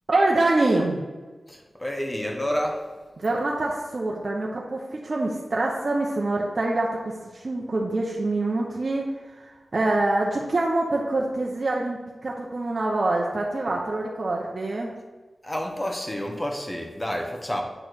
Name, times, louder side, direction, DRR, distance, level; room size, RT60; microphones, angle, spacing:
voice 1, 0.1-1.1 3.2-14.9, right 2 dB, 55° right, 0.9 m, -25 dB
voice 2, 1.5-2.9 15.4-17.6, equal, 20° left, 1.3 m, -29 dB
8.9 x 3.1 x 6.3 m
cardioid pair, 55°, 0 cm